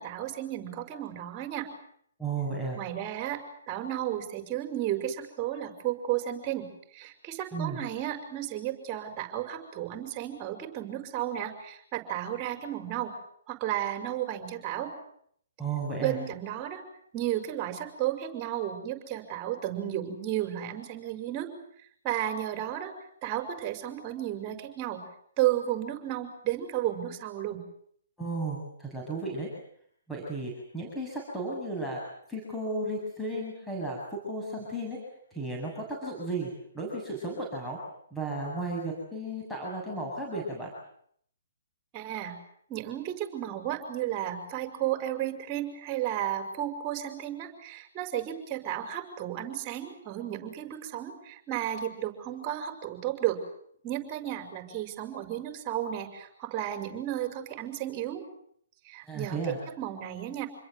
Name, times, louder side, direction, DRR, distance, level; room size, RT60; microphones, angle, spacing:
voice 1, 0.0-1.7 2.7-3.4 3.7-6.7 6.9-13.1 13.5-14.9 16.0-16.8 17.1-21.5 22.0-22.9 23.2-25.0 25.4-27.6 41.9-42.3 42.7-53.4 53.8-58.2 58.9-60.5, right 12 dB, 30° right, 6 dB, 5.8 m, -33 dB
voice 2, 2.2-2.8 7.5-7.8 15.6-16.2 28.2-29.5 30.1-32.0 32.3-34.0 34.2-35.0 35.3-36.5 36.7-37.8 38.1-40.7 59.1-59.6, right 2 dB, 5° left, -3 dB, 7.6 m, -34 dB
28.0 x 22.0 x 8.1 m, 0.67 s
hypercardioid pair, 135°, 0 cm